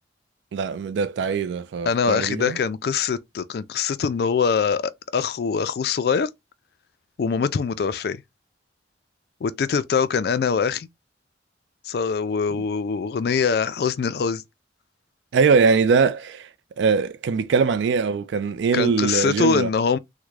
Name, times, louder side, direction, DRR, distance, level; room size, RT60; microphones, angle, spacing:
voice 1, 0.5-2.6 15.3-16.5 16.8-19.7, right 5 dB, 75° right, 0.3 m, -21 dB
voice 2, 1.9-6.3 7.2-8.2 9.4-10.9 11.8-14.4 18.7-20.0, left 6 dB, 55° left, 0.3 m, -23 dB
3.5 x 2.1 x 3.1 m
head